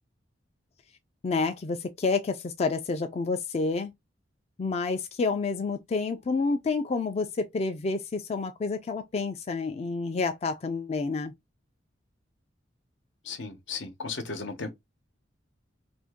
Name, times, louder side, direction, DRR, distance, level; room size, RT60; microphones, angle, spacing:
voice 1, 1.2-3.9 4.6-11.3, left 4 dB, 35° left, 0.3 m, -29 dB
voice 2, 13.2-14.7, left 4 dB, 80° left, 0.9 m, -35 dB
2.8 x 2.6 x 3.5 m
head